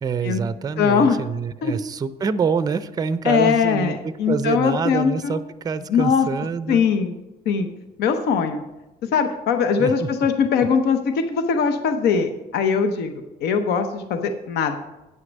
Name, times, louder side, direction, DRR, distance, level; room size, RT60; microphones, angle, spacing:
voice 1, 0.0-6.8 9.8-10.1, right 5 dB, 20° right, 14 dB, 0.4 m, -26 dB
voice 2, 0.8-1.2 1.6-1.7 3.2-5.4 5.9-6.3 6.7-7.1 7.5-7.7 8.0-8.6 9.1-14.8, left 6 dB, 75° left, 7 dB, 0.8 m, -21 dB
9.2 x 6.5 x 5.2 m, 1.0 s
cardioid pair, 110°, 17 cm